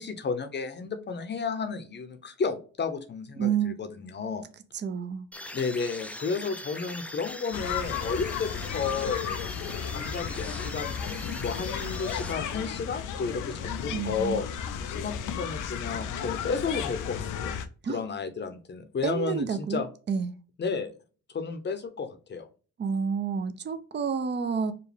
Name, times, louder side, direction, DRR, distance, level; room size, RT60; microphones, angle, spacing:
voice 1, 0.0-4.5 5.5-9.2 9.9-14.5 14.9-17.6 17.9-19.9 20.6-20.9 21.3-22.5, left 5 dB, 35° left, 0.8 m, -32 dB
voice 2, 3.4-3.7 4.7-5.3 13.9-14.4 17.8-18.0 19.0-19.8 20.1-20.3 22.8-24.7, right 6 dB, 35° right, 0.6 m, -29 dB
sound 1, 5.3-12.8, left 1 dB, 5° left, 0.4 m, -41 dB
sound 2, 7.5-17.7, left 8 dB, 85° left, 0.6 m, -34 dB
5.1 x 2.3 x 3.3 m
cardioid pair, 90°, 30 cm